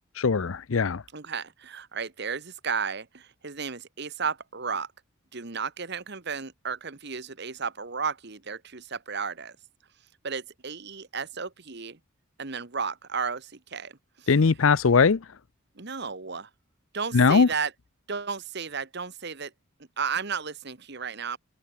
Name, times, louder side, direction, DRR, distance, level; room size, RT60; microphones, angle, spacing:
voice 1, 0.2-1.0 14.3-15.2 17.1-17.5, left 5 dB, 70° left, 0.6 m, -20 dB
voice 2, 1.1-4.9 5.3-9.6 10.2-12.0 12.4-14.3 15.8-16.5 16.9-17.7 18.1-19.5 20.0-21.4, right 5 dB, 50° right, 1.4 m, -33 dB
open air
head